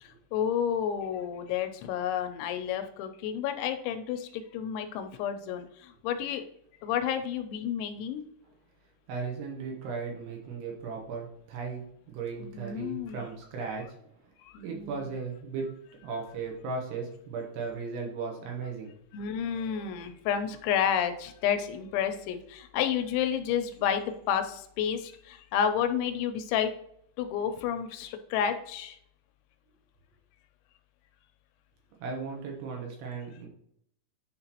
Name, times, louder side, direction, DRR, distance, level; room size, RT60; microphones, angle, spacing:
voice 1, 0.0-6.4 6.8-8.2 12.4-13.2 14.4-15.0 19.1-26.7 27.2-29.0, left 8 dB, 85° left, 8 dB, 2.9 m, -30 dB
voice 2, 9.1-14.0 14.6-15.7 16.0-18.9 32.0-33.5, right 4 dB, 70° right, 0 dB, 2.8 m, -36 dB
9.8 x 3.8 x 2.9 m, 0.70 s
omnidirectional pair, 5.3 m